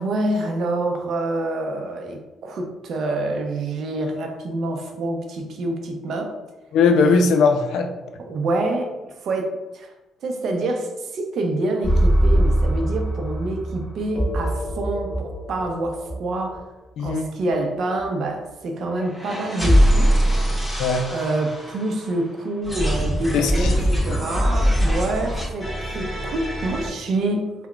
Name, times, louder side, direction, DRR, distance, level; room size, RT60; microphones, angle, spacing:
voice 1, 0.0-6.4 8.2-9.9 10.2-16.6 17.0-20.2 21.1-27.5, right 2 dB, 65° right, 4 dB, 0.4 m, -27 dB
voice 2, 6.7-7.9 17.0-17.2 20.8-21.1 23.3-23.9, left 4 dB, 85° left, 5 dB, 0.3 m, -19 dB
sound 1, 11.8-16.6 17.0-17.1 17.5-17.6 18.0-18.1 18.9-22.2 22.6-26.9, equal, 10° left, 1.2 m, -22 dB
3.6 x 2.1 x 2.2 m, 1.1 s
cardioid pair, 90°, 0 cm